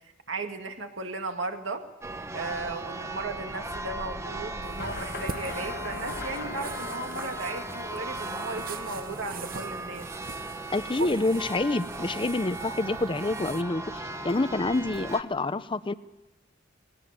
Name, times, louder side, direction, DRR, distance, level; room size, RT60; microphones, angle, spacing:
voice 1, 0.3-1.9 2.3-10.1, right 3 dB, 75° right, 5 dB, 2.2 m, -36 dB
Church bell, 2.0-15.2, right 2 dB, 15° right, 0.9 m, -37 dB
sound 1, 4.6-13.6, right 5 dB, 50° right, 0.9 m, -44 dB
sound 2, 4.8-9.7, left 3 dB, 50° left, 1.3 m, -41 dB
voice 2, 10.7-15.9, left 2 dB, 25° left, 15 dB, 0.6 m, -27 dB
19.5 x 18.5 x 8.1 m, 1.0 s
head